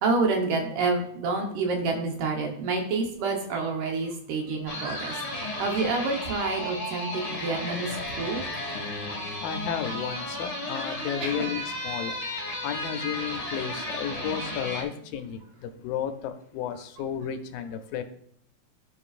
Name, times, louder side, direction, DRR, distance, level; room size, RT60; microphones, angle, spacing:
voice 1, 0.0-5.2 5.6-8.4 11.2-11.5, right 3 dB, 70° right, 2.4 m, -28 dB
sound 1, 4.7-14.8, left 1 dB, 35° left, 1.2 m, -34 dB
voice 2, 9.4-12.1 12.6-18.0, left 8 dB, 80° left, 2.3 m, -33 dB
14.5 x 5.3 x 2.5 m
omnidirectional pair, 4.1 m